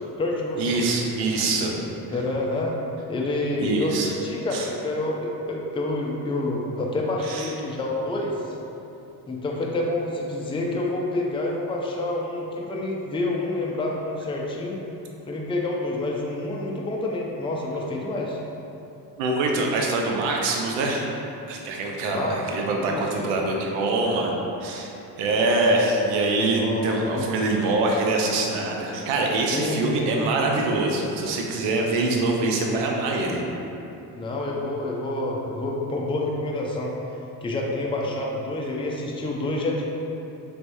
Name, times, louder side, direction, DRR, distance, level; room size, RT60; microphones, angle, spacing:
voice 1, 0.0-0.8 2.1-2.8 3.1-8.5 9.3-14.8 15.3-18.4 22.1-23.3 26.6-27.1 29.5-30.1 34.1-36.9 37.4-39.8, left 2 dB, 10° left, -2 dB, 0.4 m, -28 dB
voice 2, 0.6-1.7 3.6-4.1 4.5-4.7 7.3-7.5 19.2-21.1 21.5-24.3 24.6-33.4, right 2 dB, 80° right, 0 dB, 0.6 m, -24 dB
3.3 x 3.0 x 2.6 m, 2.9 s
hypercardioid pair, 55°, 47 cm